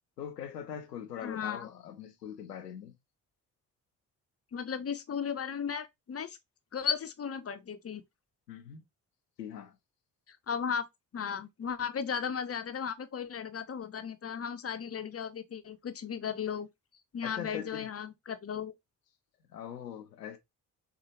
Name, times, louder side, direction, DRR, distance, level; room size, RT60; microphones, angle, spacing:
voice 1, 0.2-2.9 8.5-8.8 9.4-9.7 17.2-17.9 19.5-20.4, left 9 dB, 90° left, 0.7 m, -42 dB
voice 2, 1.2-1.7 4.5-6.4 6.7-8.0 10.3-10.9 11.1-16.7 17.1-18.7, left 7 dB, 30° left, 0.8 m, -35 dB
6.7 x 2.5 x 2.9 m
figure-of-eight pair, 45°, 47 cm